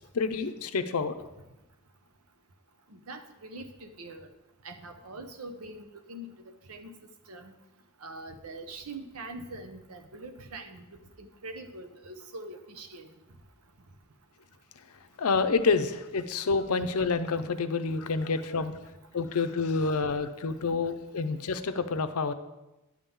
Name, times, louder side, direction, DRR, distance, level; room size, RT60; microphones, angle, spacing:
voice 1, 0.1-1.3 15.2-18.7 19.1-22.3, left 4 dB, 85° left, 10 dB, 0.6 m, -28 dB
voice 2, 2.9-4.3 4.6-6.3 6.7-6.9 7.3-7.5 8.0-10.8 11.2-13.1, right 2 dB, 80° right, 7 dB, 0.9 m, -43 dB
10.5 x 3.8 x 7.1 m, 1.0 s
head